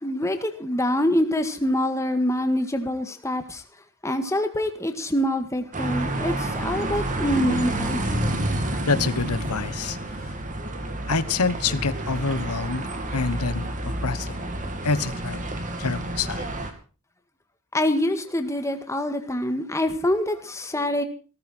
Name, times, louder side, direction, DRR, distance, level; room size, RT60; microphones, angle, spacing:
voice 1, 0.0-3.6 4.0-8.0 17.7-21.0, left 1 dB, 15° left, 1.8 m, -25 dB
sound 1, 5.7-16.7, right 1 dB, 35° right, 2.6 m, -29 dB
voice 2, 8.9-10.0 11.1-12.9 13.1-14.5 14.8-15.4 15.8-16.5, left 4 dB, 85° left, 1.2 m, -26 dB
18.0 x 14.0 x 4.4 m
head